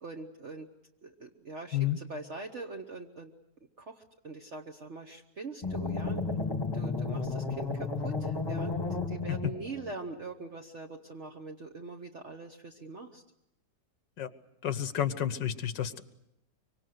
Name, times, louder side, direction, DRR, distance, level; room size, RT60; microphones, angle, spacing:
voice 1, 0.0-0.7 1.0-3.3 3.8-6.2 6.7-13.2, right 3 dB, 45° right, 3 dB, 1.3 m, -43 dB
sound 1, 5.6-9.9, left 3 dB, 15° left, 1.3 m, -33 dB
voice 2, 14.6-16.0, left 10 dB, 85° left, 13 dB, 1.8 m, -31 dB
24.5 x 24.5 x 8.0 m, 0.83 s
omnidirectional pair, 1.9 m